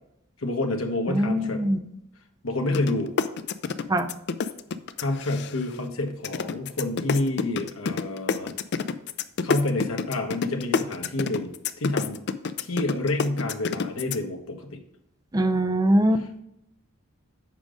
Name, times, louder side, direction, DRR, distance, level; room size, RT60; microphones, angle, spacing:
voice 1, 0.4-1.6 2.4-3.1 5.0-8.5 9.4-11.5 11.8-12.2 12.6-14.8, left 2 dB, 80° left, 4 dB, 1.2 m, -28 dB
voice 2, 1.1-1.8 3.9-4.1 15.3-16.4, right 1 dB, 20° right, 9 dB, 0.5 m, -22 dB
sound 1, 2.7-2.9 3.2-5.8 6.2-14.2, left 5 dB, 55° left, 0.4 m, -27 dB
7.4 x 5.0 x 5.1 m, 0.77 s
head